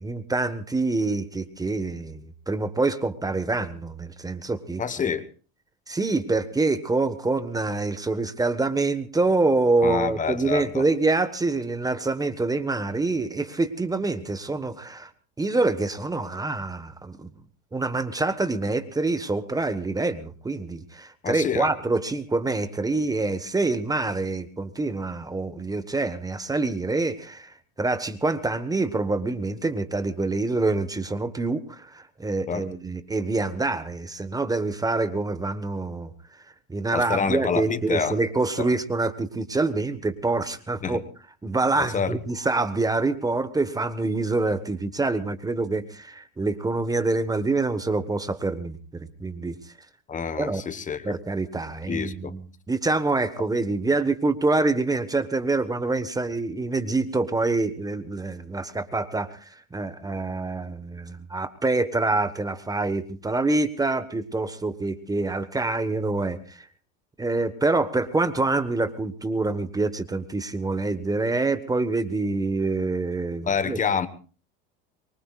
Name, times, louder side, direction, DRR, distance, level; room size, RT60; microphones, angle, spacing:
voice 1, 0.0-5.1 5.9-15.1 15.4-17.3 17.7-36.4 36.7-41.0 41.4-49.6 50.4-50.6 51.0-66.7 67.2-73.8, right 3 dB, 10° right, 1.3 m, -26 dB
voice 2, 4.8-5.3 9.8-10.9 21.2-21.7 32.5-32.6 36.9-38.2 38.6-38.7 40.8-41.0 41.8-42.1 50.1-51.2 51.9-52.3 73.5-74.1, left 6 dB, 25° left, 1.3 m, -27 dB
24.5 x 23.0 x 2.5 m
supercardioid pair, 105°, 30 cm